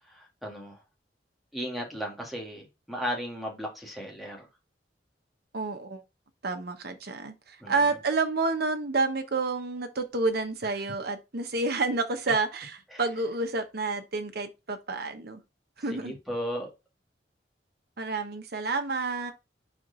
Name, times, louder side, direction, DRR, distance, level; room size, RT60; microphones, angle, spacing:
voice 1, 0.1-0.8 1.5-4.5 7.6-7.9 12.9-13.0 15.9-16.7, equal, ahead, 1.8 m, -35 dB
voice 2, 5.5-6.0 6.4-12.7 13.0-15.4 15.8-16.1 18.0-19.3, right 3 dB, 60° right, 1.0 m, -29 dB
4.5 x 4.3 x 5.1 m
head